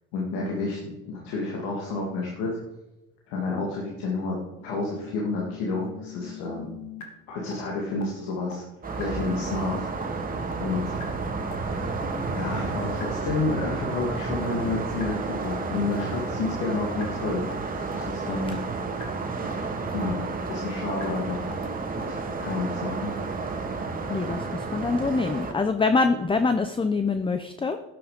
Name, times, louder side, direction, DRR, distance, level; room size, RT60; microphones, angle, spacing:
voice 1, 0.1-0.8 1.1-2.6 3.3-4.4 4.6-6.7 7.3-8.6 8.9-9.9 10.6-10.9 11.6-12.0 12.3-17.6 17.9-18.6 19.9-21.4 22.1-23.1, left 3 dB, 90° left, -2 dB, 2.6 m, -30 dB
sound 1, 4.6-7.0 7.5-7.6 8.0-8.1 8.5-8.6 9.0-9.1 9.5-9.6 10.0-10.1 10.5-10.6 11.0-11.1 11.5-11.6 12.0-12.1 12.5-12.6 13.0-13.1 13.5-13.6 14.0-14.1 14.5-14.6 15.0-15.1 15.5-15.6 16.0-16.1 16.5-16.6 17.0-17.1 17.5-17.6 18.0-18.1 18.5-18.6 19.0-19.1 19.5-19.6 20.0-20.1 20.5-20.6 21.0-21.1 21.5-21.6 22.0-22.1 22.5-22.6, left 10 dB, 70° left, 2.8 m, -41 dB
sound 2, 8.8-25.5, right 3 dB, 30° right, 2.2 m, -31 dB
voice 2, 24.1-27.8, left 4 dB, 15° left, 9 dB, 0.8 m, -25 dB
11.0 x 9.8 x 5.2 m, 1.0 s
supercardioid pair, 90°, 30 cm